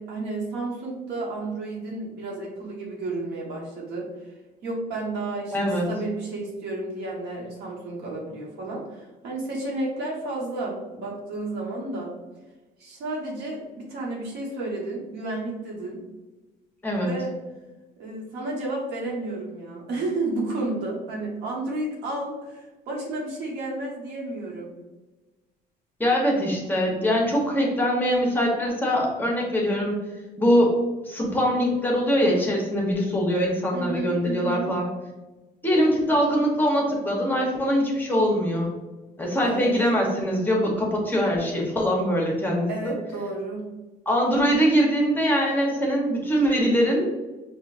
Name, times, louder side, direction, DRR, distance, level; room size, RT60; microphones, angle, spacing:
voice 1, 0.0-4.1 4.6-12.1 12.8-16.0 17.0-17.3 18.0-24.7 33.7-34.7 39.4-39.7 42.7-43.7, right 2 dB, 85° right, -3 dB, 1.2 m, -32 dB
voice 2, 5.5-5.9 16.8-17.1 26.0-30.0 30.4-30.8 31.0-34.9 35.6-38.7 39.2-42.9 44.1-47.1, equal, 10° left, -2 dB, 0.9 m, -22 dB
4.8 x 2.4 x 2.5 m, 1.2 s
cardioid pair, 110°, 17 cm